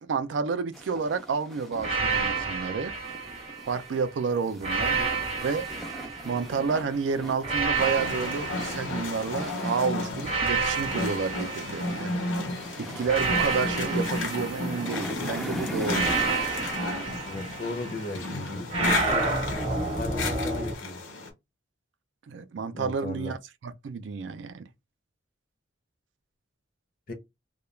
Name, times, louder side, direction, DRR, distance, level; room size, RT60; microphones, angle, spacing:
voice 1, 0.0-2.9 3.7-5.0 5.4-5.7 6.2-12.1 12.8-16.1 22.3-23.4 23.6-24.6, right 5 dB, 70° right, 0.4 m, -30 dB
sound 1, 0.7-20.0, equal, ahead, 0.3 m, -41 dB
sound 2, 1.8-4.0 4.6-6.8 7.4-9.6 10.2-12.4 13.0-15.2 15.9-18.0 18.7-20.7, right 4 dB, 30° right, 0.7 m, -30 dB
sound 3, 7.7-21.3, left 2 dB, 80° left, 0.8 m, -33 dB
voice 2, 17.3-19.3 20.0-21.0 22.7-23.3 27.1-27.2, left 2 dB, 45° left, 0.6 m, -36 dB
2.3 x 2.2 x 3.0 m
head